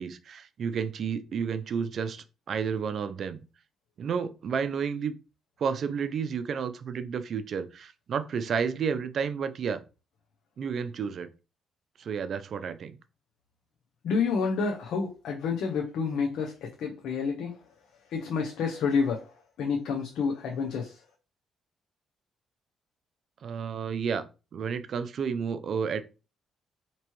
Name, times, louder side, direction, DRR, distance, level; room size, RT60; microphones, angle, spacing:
voice 1, 0.0-3.4 4.0-5.2 5.6-9.8 10.6-11.3 12.0-13.0 23.4-24.3 24.5-26.0, right 6 dB, 60° right, 0.5 m, -31 dB
voice 2, 14.0-17.7 18.0-21.1, left 5 dB, 80° left, 0.7 m, -29 dB
4.5 x 3.0 x 3.0 m
cardioid pair, 90°, 0 cm